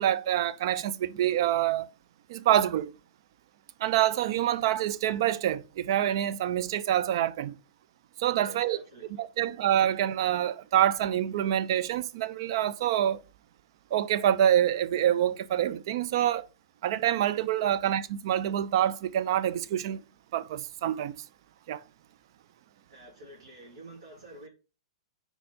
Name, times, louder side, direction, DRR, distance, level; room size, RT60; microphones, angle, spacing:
voice 1, 0.0-1.9 2.3-2.9 3.8-7.6 8.2-8.8 9.2-13.2 13.9-16.5 16.8-20.0 20.3-21.2 21.7-21.8, right 11 dB, 55° right, 0.5 m, -26 dB
voice 2, 8.4-9.5 22.9-24.5, right 1 dB, 75° right, 2.6 m, -49 dB
4.5 x 4.3 x 5.3 m
hypercardioid pair, 110°, 3 cm